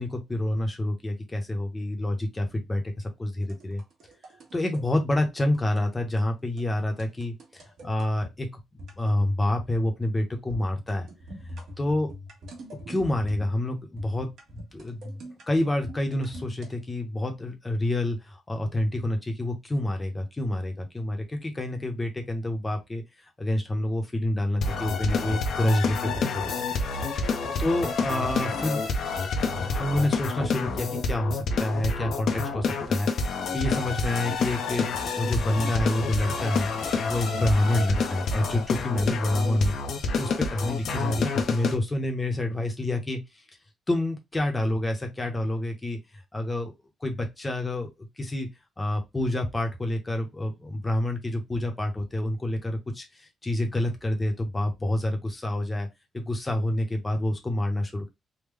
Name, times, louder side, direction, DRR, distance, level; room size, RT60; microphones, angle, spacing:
voice 1, 0.0-3.8 4.5-8.6 9.0-11.1 11.8-12.1 12.9-23.0 23.4-26.6 27.6-28.8 29.1-34.9 35.2-36.7 37.0-39.7 40.2-43.4 43.9-46.7 47.0-47.9 48.2-48.5 48.8-55.9 56.1-58.1, left 1 dB, 15° left, 0.8 m, -28 dB
sound 1, 3.4-4.9 5.5-5.9 6.2-6.3 6.6-6.7 7.0-8.4 8.8-9.4 9.6-9.9 10.5-13.6 14.0-16.7, equal, 65° right, 1.3 m, -43 dB
sound 2, 24.6-41.7, left 4 dB, 65° left, 0.6 m, -28 dB
3.6 x 2.2 x 3.2 m
cardioid pair, 150°, 0 cm